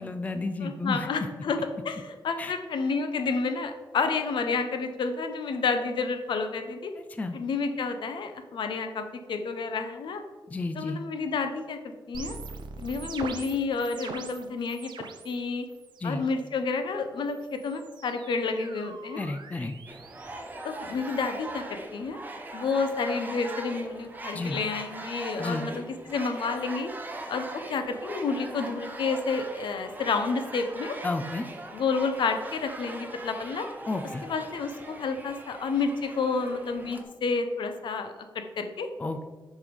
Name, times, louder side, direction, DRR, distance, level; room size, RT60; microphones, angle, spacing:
voice 1, 0.0-1.1 2.4-2.5 7.0-7.4 10.5-11.0 16.0-16.2 19.2-19.7 24.3-24.6 25.4-25.7 31.0-31.5 33.9-34.2 39.0-39.2, left 2 dB, 20° left, 7 dB, 0.3 m, -32 dB
voice 2, 0.6-1.6 1.8-6.9 7.3-10.2 10.8-12.4 12.8-15.7 16.0-19.2 20.6-22.2 22.5-26.9 27.3-31.0 31.7-33.7 34.3-38.9, left 4 dB, 70° left, 7 dB, 0.7 m, -30 dB
sound 1, 12.1-15.4 15.7-16.2 17.3-21.4, right 5 dB, 65° right, 0.6 m, -43 dB
sound 2, 19.9-37.0, right 2 dB, 20° right, 0.7 m, -41 dB
5.5 x 4.7 x 5.1 m, 1.2 s
wide cardioid pair, 170°, 8 cm